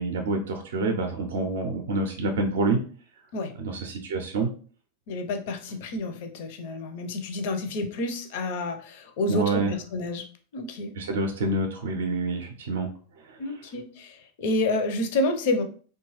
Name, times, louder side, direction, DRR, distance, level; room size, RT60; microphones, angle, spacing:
voice 1, 0.0-2.8 3.6-4.5 9.3-9.7 10.9-12.9 13.3-13.4, right 3 dB, 60° right, 4 dB, 0.5 m, -27 dB
voice 2, 5.1-10.2 10.5-10.9 13.4-15.6, left 2 dB, 50° left, 6 dB, 0.5 m, -29 dB
2.8 x 2.2 x 3.0 m, 0.42 s
figure-of-eight pair, 90°, 0 cm